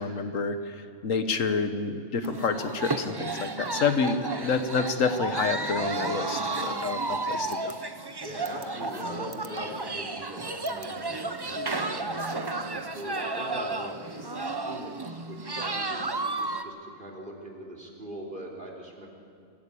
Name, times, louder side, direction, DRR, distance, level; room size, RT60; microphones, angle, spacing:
voice 1, 0.0-7.7, left 4 dB, 75° left, 9 dB, 1.5 m, -28 dB
sound 1, 2.2-16.6, right 3 dB, 20° right, 0.8 m, -32 dB
voice 2, 8.2-16.1 16.6-19.1, right 1 dB, 40° right, 0 dB, 3.8 m, -41 dB
24.0 x 15.5 x 8.5 m, 2.4 s
omnidirectional pair, 1.4 m